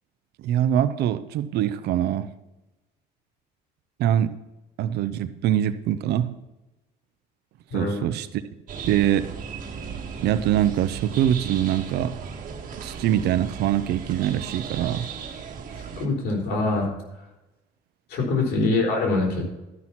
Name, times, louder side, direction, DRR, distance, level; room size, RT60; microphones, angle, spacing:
voice 1, 0.4-2.3 4.0-4.3 4.8-6.4 7.7-8.3 8.8-9.3 10.2-12.2 12.8-15.1 18.6-18.7, right 11 dB, 75° right, 13 dB, 0.8 m, -23 dB
sound 1, 8.7-16.1, right 6 dB, 55° right, 1.8 m, -36 dB
voice 2, 16.0-16.9 18.1-19.5, left 3 dB, 75° left, 0 dB, 4.2 m, -24 dB
12.5 x 6.1 x 5.8 m, 1.0 s
cardioid pair, 110°, 17 cm